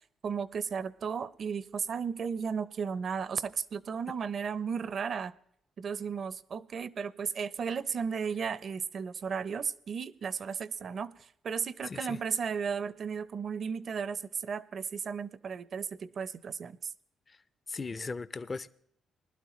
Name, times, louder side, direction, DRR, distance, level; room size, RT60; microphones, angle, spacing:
voice 1, 0.2-5.3 5.8-16.9, right 6 dB, 50° right, 0.6 m, -34 dB
voice 2, 11.8-12.2 17.3-17.4 17.7-18.7, left 4 dB, 30° left, 0.4 m, -38 dB
20.0 x 12.0 x 3.1 m
cardioid pair, 90°, 0 cm